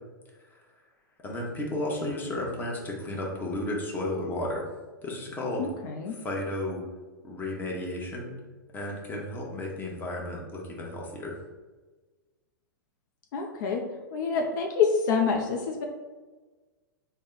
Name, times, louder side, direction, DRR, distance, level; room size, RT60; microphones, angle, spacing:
voice 1, 1.2-4.6 5.0-5.7 6.1-6.8 7.2-8.4 8.7-11.3, left 1 dB, 15° left, -2 dB, 0.9 m, -33 dB
voice 2, 5.6-6.2 13.3-13.8 14.1-15.8, left 5 dB, 60° left, 2 dB, 0.5 m, -27 dB
4.1 x 2.2 x 3.7 m, 1.3 s
hypercardioid pair, 115°, 11 cm